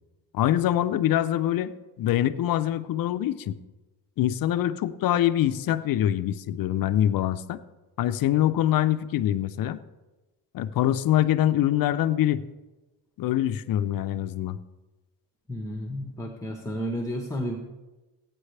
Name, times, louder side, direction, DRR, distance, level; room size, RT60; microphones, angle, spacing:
voice 1, 0.3-1.7 2.0-3.5 4.2-7.6 8.0-9.8 10.5-12.4 13.2-14.6, left 12 dB, 60° left, 12 dB, 0.6 m, -24 dB
voice 2, 15.5-17.6, equal, 10° left, 2 dB, 1.2 m, -32 dB
16.0 x 9.1 x 3.3 m, 1.1 s
cardioid pair, 100°, 40 cm